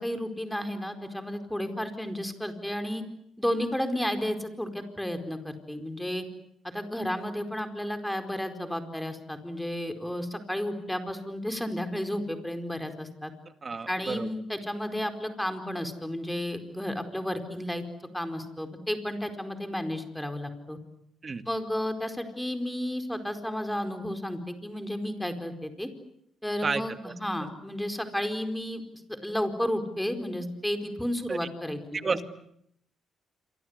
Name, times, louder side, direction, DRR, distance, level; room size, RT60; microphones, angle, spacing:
voice 1, 0.0-3.0 3.4-6.2 6.6-13.3 13.9-17.8 18.1-20.8 21.5-25.9 26.4-28.8 29.1-32.2, left 1 dB, 5° left, 7 dB, 4.6 m, -32 dB
voice 2, 13.6-14.3 21.2-21.5 26.6-27.1 27.4-27.5 31.3-31.5 31.9-32.2, right 4 dB, 35° right, 9 dB, 2.1 m, -31 dB
27.5 x 25.5 x 8.2 m, 0.73 s
cardioid pair, 90°, 0 cm